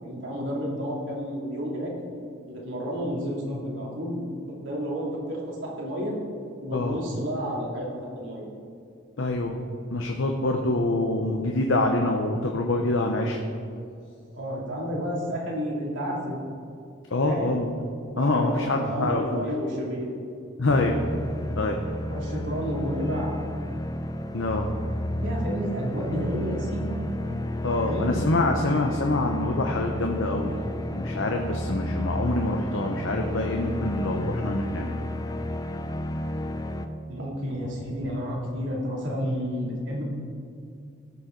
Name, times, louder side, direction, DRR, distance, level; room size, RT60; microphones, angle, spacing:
voice 1, 0.0-1.9 2.5-4.2 4.6-6.2 6.6-8.5 14.3-16.4 17.2-17.6 18.0-20.1 22.1-23.4 25.2-27.0 27.8-28.1 37.1-40.0, equal, 70° right, -4 dB, 2.8 m, -31 dB
voice 2, 9.2-9.6 9.9-13.4 17.1-17.7 18.2-19.4 20.6-21.0 21.6-21.8 24.3-24.7 27.6-30.5 30.9-35.0, left 2 dB, 75° left, 2 dB, 0.9 m, -25 dB
sound 1, 20.7-36.9, left 1 dB, 20° left, 0.5 m, -32 dB
17.5 x 7.1 x 3.9 m, 2.4 s
head